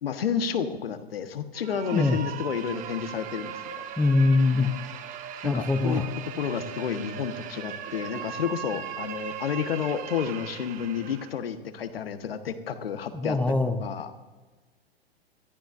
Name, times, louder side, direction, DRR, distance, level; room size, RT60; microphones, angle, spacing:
voice 1, 0.0-3.6 5.4-6.0 6.4-14.1, left 7 dB, 65° left, 9 dB, 1.3 m, -31 dB
sound 1, 1.5-11.4, right 9 dB, 25° right, 0.9 m, -38 dB
voice 2, 4.0-4.7 5.4-6.0 13.1-13.8, left 3 dB, 5° left, 7 dB, 0.6 m, -23 dB
22.5 x 14.0 x 2.5 m, 1.3 s
figure-of-eight pair, 105°, 31 cm